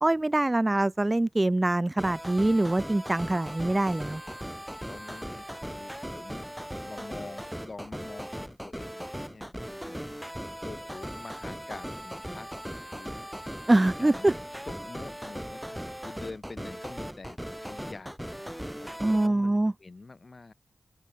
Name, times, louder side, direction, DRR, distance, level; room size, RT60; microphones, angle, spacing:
voice 1, 0.0-4.2 13.7-14.3 19.0-19.7, right 2 dB, 20° right, 0.4 m, -24 dB
Video game music loop (Adventure), 2.0-19.3, equal, 5° right, 3.1 m, -39 dB
voice 2, 4.9-6.5 6.8-10.0 10.7-13.5 13.9-18.5 18.8-20.5, left 3 dB, 40° left, 5.5 m, -46 dB
open air
wide cardioid pair, 110°, 0 cm